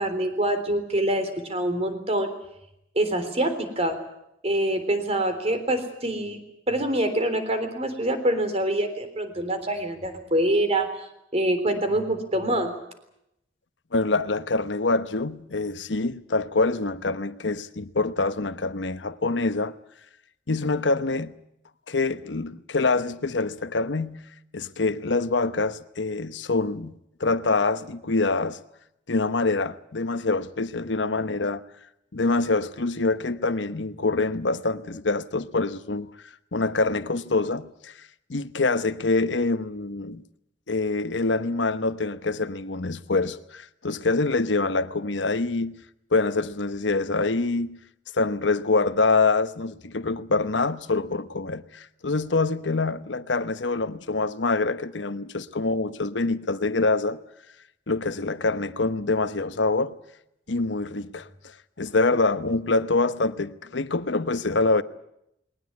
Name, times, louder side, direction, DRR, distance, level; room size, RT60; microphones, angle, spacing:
voice 1, 0.0-2.3 3.0-4.0 4.4-6.4 6.7-10.9 11.3-12.7, right 1 dB, 35° right, 3.6 m, -25 dB
voice 2, 13.9-19.7 20.5-21.4 21.9-24.3 24.5-28.6 29.1-31.6 32.1-36.1 36.5-37.9 38.3-40.2 40.7-45.8 46.1-47.7 48.1-57.2 57.9-59.9 60.5-64.8, left 3 dB, 80° left, 1.0 m, -25 dB
21.0 x 19.0 x 9.7 m
head